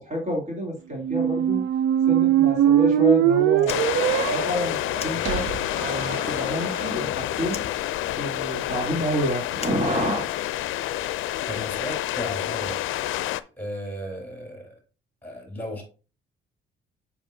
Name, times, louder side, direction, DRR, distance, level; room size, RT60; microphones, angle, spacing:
voice 1, 0.0-1.6 2.0-4.8 5.0-5.4 5.8-7.6 8.1-10.3, equal, 35° right, -1 dB, 3.1 m, -28 dB
sound 1, 1.0-6.9, right 11 dB, 85° right, 0.4 m, -22 dB
Fire, 3.5-5.8 6.1-7.1 7.4-10.6, left 6 dB, 30° left, 1.0 m, -42 dB
sound 2, 3.7-13.4, left 14 dB, 80° left, 0.5 m, -28 dB
voice 2, 11.5-12.8 13.6-14.8 15.2-15.8, equal, 10° left, 0 dB, 3.7 m, -34 dB
7.3 x 6.0 x 2.7 m, 0.34 s
cardioid pair, 90°, 20 cm